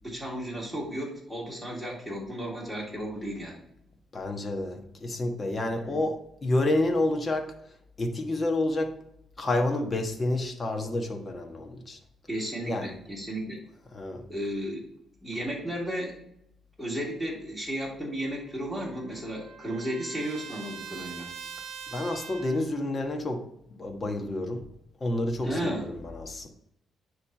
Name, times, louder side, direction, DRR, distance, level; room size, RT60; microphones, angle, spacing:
voice 1, 0.0-3.6 12.3-13.6 14.3-14.8 15.2-16.2 16.8-21.3 25.4-25.9, equal, ahead, -4 dB, 2.8 m, -34 dB
voice 2, 4.1-7.5 8.0-8.9 9.4-12.0 12.7-12.9 13.9-14.2 21.9-23.4 23.7-24.6 25.0-26.5, left 2 dB, 30° left, 3 dB, 1.3 m, -29 dB
Trumpet, 18.3-22.7, right 7 dB, 75° right, 0.8 m, -43 dB
9.7 x 3.3 x 4.2 m, 0.76 s
cardioid pair, 90°, 0 cm